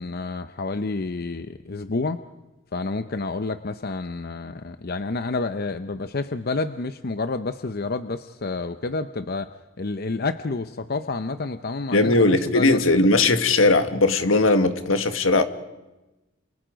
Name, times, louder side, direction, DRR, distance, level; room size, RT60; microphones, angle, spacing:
voice 1, 0.0-2.2 2.7-12.8, left 3 dB, 50° left, 0.7 m, -29 dB
voice 2, 11.9-15.4, left 2 dB, 80° left, 1.8 m, -19 dB
28.5 x 28.5 x 5.2 m
head